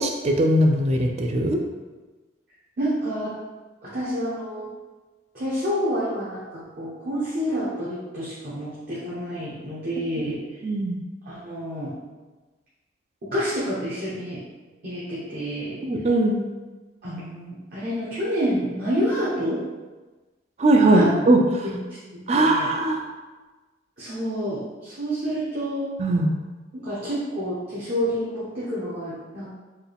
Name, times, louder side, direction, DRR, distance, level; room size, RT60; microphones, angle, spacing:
voice 1, 0.0-1.6 10.6-11.0 15.8-16.5 20.6-21.6 22.3-23.0 26.0-26.3, right 1 dB, 35° right, 3 dB, 0.4 m, -20 dB
voice 2, 2.8-3.4 3.8-4.7 5.3-10.4 11.3-11.9 13.3-14.4 14.8-15.8 17.0-19.6 20.9-21.1 21.6-21.8 22.1-22.7 24.0-25.9 26.7-29.5, equal, 55° right, -9 dB, 0.9 m, -28 dB
4.5 x 2.3 x 3.4 m, 1.2 s
head